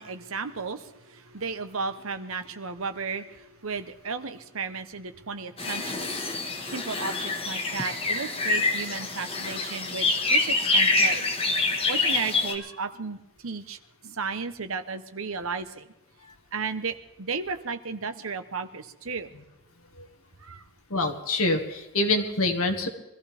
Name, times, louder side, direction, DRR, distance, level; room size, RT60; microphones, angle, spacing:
voice 1, 0.0-6.2 6.7-11.3 11.9-15.9 16.5-19.3 20.4-20.6, right 5 dB, 80° right, 9 dB, 1.0 m, -34 dB
sound 1, 5.6-12.5, left 3 dB, 25° left, 1.6 m, -26 dB
voice 2, 20.9-22.9, left 2 dB, 85° left, 4 dB, 1.9 m, -25 dB
23.5 x 14.5 x 3.5 m, 0.98 s
head